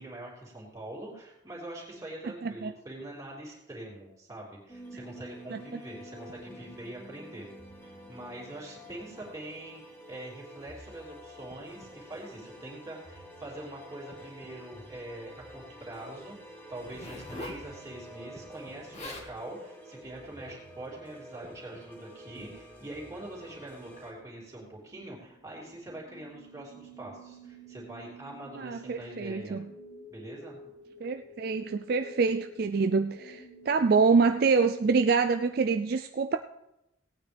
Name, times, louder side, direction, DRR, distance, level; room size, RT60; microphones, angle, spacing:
voice 1, 0.0-7.5 7.8-29.6 30.1-30.6, right 1 dB, 15° right, -5 dB, 3.1 m, -44 dB
sound 1, 4.7-24.1, equal, 10° left, 1.7 m, -48 dB
Zipper (clothing), 16.8-17.6 18.6-18.7 18.9-19.3 20.0-20.2, left 1 dB, 35° left, 1.7 m, -42 dB
sound 2, 24.1-35.8, right 2 dB, 65° left, 3.3 m, -50 dB
voice 2, 28.6-29.7 31.0-36.4, right 4 dB, 50° right, 8 dB, 0.4 m, -26 dB
17.5 x 9.1 x 3.4 m, 0.87 s
head